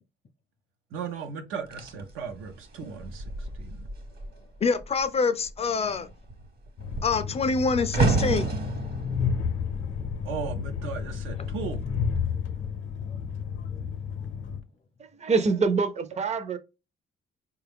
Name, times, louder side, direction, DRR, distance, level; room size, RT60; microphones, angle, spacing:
voice 1, 0.9-3.2 3.6-3.8 10.2-11.8, right 6 dB, 90° right, 0.7 m, -36 dB
sound 1, 1.7-4.4 4.7-5.1 5.4-10.7 11.5-11.7, right 3 dB, 50° right, 1.1 m, -31 dB
voice 2, 4.6-6.1 7.0-8.5 11.4-11.5, left 4 dB, 30° left, 0.4 m, -26 dB
Train, 6.8-14.6, left 6 dB, 75° left, 0.6 m, -31 dB
voice 3, 15.0-16.6, right 4 dB, 35° right, 0.6 m, -25 dB
4.3 x 2.3 x 3.4 m
cardioid pair, 90°, 20 cm